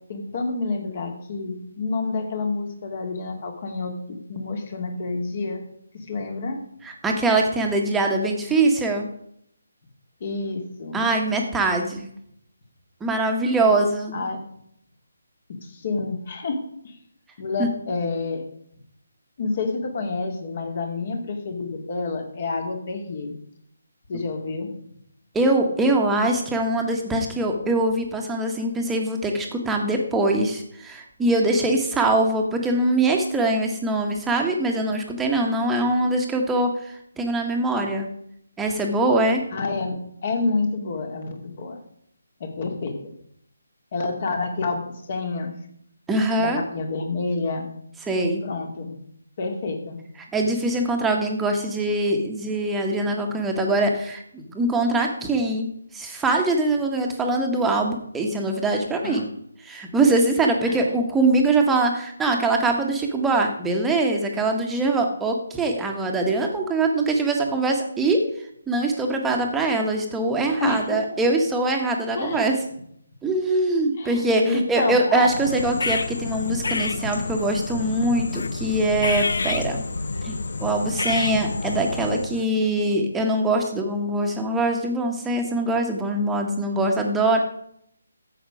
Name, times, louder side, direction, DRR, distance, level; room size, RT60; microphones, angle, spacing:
voice 1, 0.1-5.6 5.9-6.6 10.2-11.0 14.1-14.4 15.6-16.6 16.8-17.0 17.4-18.4 19.4-23.3 24.1-24.7 39.5-40.0 40.2-41.8 42.4-43.1 43.9-45.5 46.4-47.7 48.4-49.0 49.4-50.0 59.0-59.2 60.7-60.8 70.6-71.0 72.1-72.6 74.0-75.3, left 3 dB, 40° left, 4 dB, 2.3 m, -28 dB
voice 2, 6.8-9.1 10.9-12.1 13.0-14.2 17.6-17.7 24.1-24.2 25.3-38.1 38.6-39.4 46.1-46.6 48.1-48.4 50.3-55.7 55.9-59.3 59.6-68.2 68.7-72.5 73.2-79.8 80.2-87.4, right 2 dB, 5° right, 2 dB, 1.5 m, -23 dB
sound 1, 75.2-82.5, left 3 dB, 60° left, 0.7 m, -28 dB
13.0 x 8.0 x 5.0 m, 0.70 s
figure-of-eight pair, 145°, 0 cm